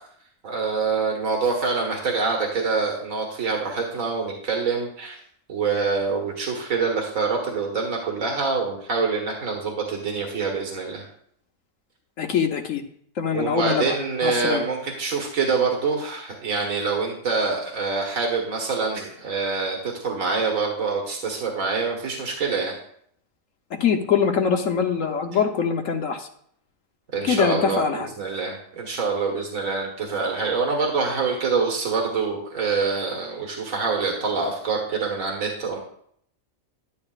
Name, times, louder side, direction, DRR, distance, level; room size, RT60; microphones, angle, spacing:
voice 1, 0.4-5.2 5.5-11.1 13.3-22.7 27.1-35.8, right 4 dB, 80° right, 0 dB, 2.0 m, -25 dB
voice 2, 12.2-12.8 13.2-13.9 14.2-14.6 23.8-26.3 27.2-28.1, left 6 dB, 75° left, 4 dB, 1.3 m, -23 dB
11.5 x 10.5 x 2.4 m, 0.65 s
omnidirectional pair, 1.4 m